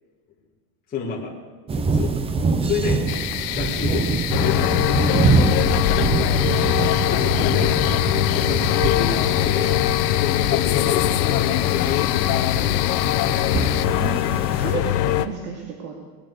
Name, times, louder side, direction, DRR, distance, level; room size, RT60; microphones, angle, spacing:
voice 1, 0.9-1.3 1.7-2.1 2.6-3.0 3.5-4.1 4.4-5.2 7.0-7.7 8.3-9.7 10.4-12.8, left 6 dB, 15° left, -6 dB, 2.8 m, -29 dB
sound 1, 1.7-14.7, right 4 dB, 10° right, 0.6 m, -25 dB
sound 2, 3.1-13.9, left 18 dB, 50° left, 0.6 m, -29 dB
sound 3, 4.3-15.3, left 14 dB, 80° left, 1.0 m, -22 dB
voice 2, 6.2-6.8 13.9-16.0, right 5 dB, 80° right, -1 dB, 2.9 m, -33 dB
21.0 x 8.7 x 6.6 m, 1.5 s
supercardioid pair, 140°, 48 cm